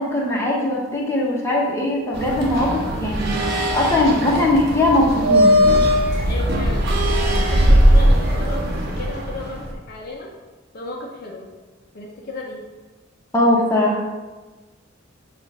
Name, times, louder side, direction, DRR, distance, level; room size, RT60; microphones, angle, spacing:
voice 1, 0.0-3.4 3.7-5.6 13.3-14.1, left 1 dB, 15° left, -4 dB, 1.0 m, -20 dB
sound 1, 2.1-9.7, equal, 55° right, 0.9 m, -19 dB
voice 2, 6.2-10.3 10.7-11.5 11.9-12.6, left 2 dB, 50° left, -1 dB, 0.7 m, -34 dB
6.9 x 2.5 x 5.5 m, 1.3 s
head